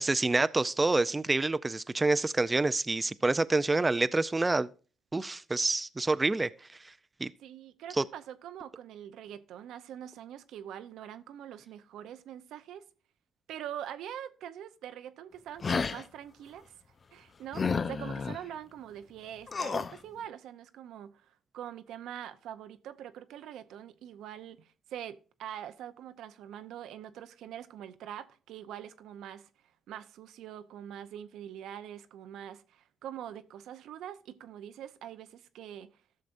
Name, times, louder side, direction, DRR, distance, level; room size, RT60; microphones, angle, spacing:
voice 1, 0.0-4.7 5.1-6.5 7.2-7.3 8.0-8.1, right 2 dB, 20° right, 0.4 m, -27 dB
voice 2, 7.4-12.8 13.5-16.7 17.1-29.5 29.9-35.9, right 10 dB, 85° right, 0.7 m, -44 dB
sound 1, 15.6-16.0 17.5-18.4 19.5-20.0, left 5 dB, 40° left, 0.5 m, -31 dB
14.0 x 6.6 x 2.6 m
cardioid pair, 90°, 0 cm